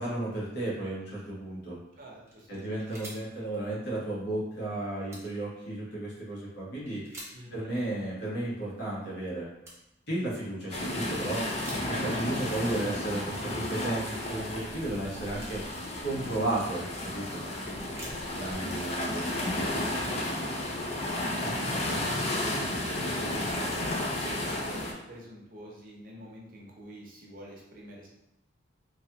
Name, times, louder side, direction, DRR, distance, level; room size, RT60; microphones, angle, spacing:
voice 1, 0.0-1.8 2.5-7.2 7.5-9.5 10.1-15.6 16.0-17.4 18.3-19.4, right 1 dB, 60° left, -7 dB, 1.3 m, -34 dB
voice 2, 2.0-2.7 7.3-7.8 18.3-19.2 20.6-20.9 21.3-28.1, right 1 dB, 50° right, -3 dB, 0.7 m, -47 dB
sound 1, 2.3-3.7 4.0-4.1 4.3-4.5 4.9-5.4 6.1-6.4 6.9-7.7 8.3-8.7 9.3-9.4 9.6-10.1 10.5-12.2 12.6-12.7 12.9-14.0 14.6-15.7 16.4-17.2 17.5-19.4, right 1 dB, 15° right, 0.8 m, -49 dB
sound 2, 10.7-24.9, left 1 dB, 35° left, 0.5 m, -32 dB
3.0 x 2.4 x 2.9 m, 0.87 s
head